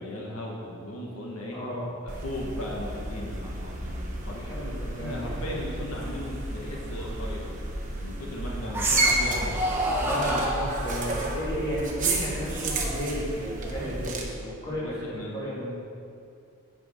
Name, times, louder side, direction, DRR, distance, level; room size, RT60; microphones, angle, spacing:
voice 1, 0.0-4.5 4.9-7.5 8.0-9.7 14.7-15.4, left 1 dB, 80° left, -2 dB, 1.3 m, -37 dB
voice 2, 1.5-1.8 4.3-5.4 10.0-15.8, equal, 20° left, -8 dB, 2.3 m, -33 dB
sound 1, 2.1-14.2, right 2 dB, 35° right, 0.9 m, -32 dB
sound 2, 7.0-7.1 8.7-9.2 9.5-10.9 12.5-14.1, right 1 dB, 10° right, 0.9 m, -29 dB
7.7 x 6.3 x 5.3 m, 2.4 s
head